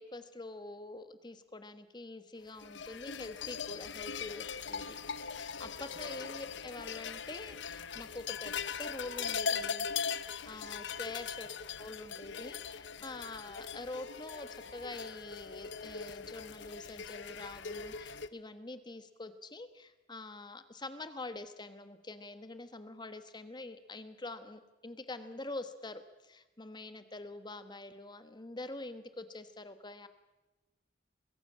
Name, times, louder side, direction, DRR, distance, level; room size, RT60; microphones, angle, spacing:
voice 1, 0.0-9.9 10.4-11.5 11.8-30.1, left 2 dB, 25° left, 11 dB, 1.2 m, -45 dB
sound 1, 2.6-18.3, left 6 dB, 75° left, 0.8 m, -40 dB
22.0 x 16.0 x 8.5 m, 1.1 s
head